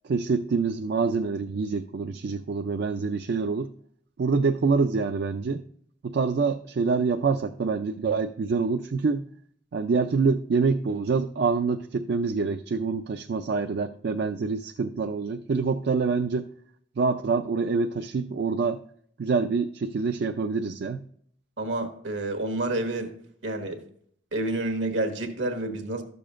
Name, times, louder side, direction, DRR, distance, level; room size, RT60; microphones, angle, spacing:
voice 1, 0.0-3.7 4.2-5.6 6.0-9.2 9.7-16.5 17.0-18.8 19.2-21.0, right 4 dB, 60° right, 6 dB, 0.4 m, -26 dB
voice 2, 21.6-23.1 23.4-23.8 24.3-26.0, right 2 dB, 80° right, 5 dB, 1.3 m, -29 dB
12.5 x 6.8 x 2.5 m, 0.62 s
head